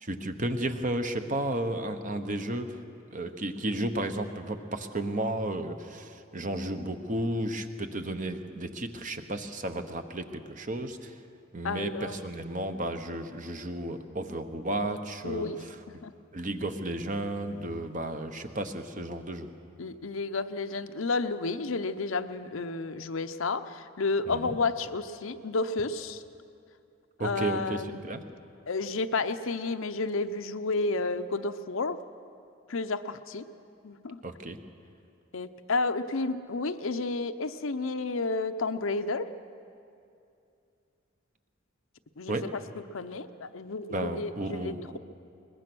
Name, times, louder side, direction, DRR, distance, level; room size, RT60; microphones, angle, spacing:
voice 1, 0.0-2.8 3.1-11.1 11.5-15.5 16.3-19.5 24.3-24.6 27.2-28.2 34.2-34.6 42.3-42.5 43.9-45.0, right 1 dB, 40° right, 7 dB, 1.0 m, -33 dB
voice 2, 11.6-12.2 15.2-15.6 15.9-16.1 19.8-26.2 27.2-28.0 28.7-32.0 32.7-33.4 33.8-34.2 35.3-39.3 42.2-45.0, left 3 dB, 75° left, 10 dB, 0.7 m, -31 dB
22.0 x 20.5 x 6.2 m, 2.5 s
head